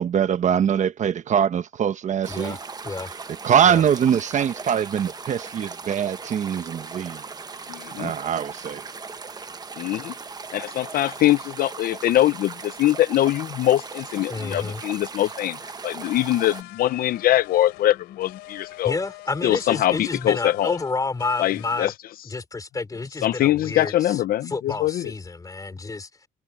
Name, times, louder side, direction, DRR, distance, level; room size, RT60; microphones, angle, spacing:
voice 1, 0.0-2.6 3.4-7.2 8.0-8.8, right 8 dB, 45° right, 1.1 m, -22 dB
sound 1, 2.2-16.6, right 4 dB, 25° right, 1.2 m, -38 dB
voice 2, 2.3-2.6 2.8-3.1 3.6-3.8 14.3-14.8 18.8-21.9 22.3-24.2 24.5-26.1, left 3 dB, 20° left, 3.5 m, -30 dB
voice 3, 7.7-8.1 9.8-10.1 10.5-15.6 15.8-19.0 19.4-20.8 21.4-21.9 23.2-25.1, left 13 dB, 60° left, 0.6 m, -22 dB
sound 2, 16.0-22.0, left 17 dB, 90° left, 3.3 m, -45 dB
cardioid pair, 110°, 17 cm